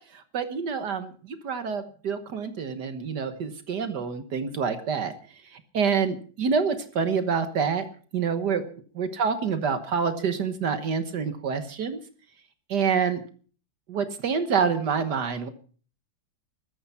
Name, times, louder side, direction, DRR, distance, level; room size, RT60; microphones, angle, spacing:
voice 1, 0.1-5.1 5.5-7.8 8.1-8.7 9.0-12.0 12.7-13.2 13.9-15.5, right 6 dB, 70° right, 9 dB, 1.8 m, -27 dB
14.5 x 13.5 x 5.6 m, 0.43 s
omnidirectional pair, 1.9 m